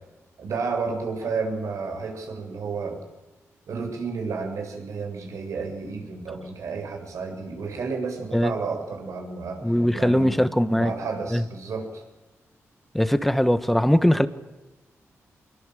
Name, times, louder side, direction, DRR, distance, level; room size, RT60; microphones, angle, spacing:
voice 1, 0.4-3.0 3.7-9.6 9.9-10.5 10.7-12.0, right 4 dB, 75° right, 7.2 m, -31 dB
voice 2, 9.6-10.9 11.3-11.4 12.9-14.3, equal, 5° left, 1.5 m, -20 dB
25.0 x 23.0 x 7.9 m
wide cardioid pair, 110°, 5 cm